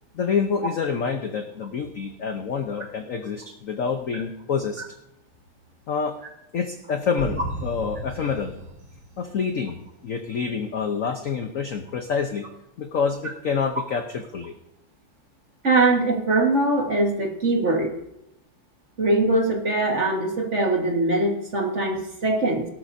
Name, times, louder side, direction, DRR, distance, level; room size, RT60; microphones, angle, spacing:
voice 1, 0.1-4.8 5.9-6.2 6.5-8.6 9.2-9.8 10.0-12.5 12.8-14.5, left 6 dB, 60° left, 6 dB, 0.8 m, -27 dB
sound 1, 7.2-9.9, right 2 dB, 70° right, 2.8 m, -35 dB
voice 2, 15.6-17.9 19.0-22.7, right 2 dB, 35° right, 1 dB, 1.8 m, -22 dB
17.5 x 12.5 x 2.7 m, 0.83 s
omnidirectional pair, 2.3 m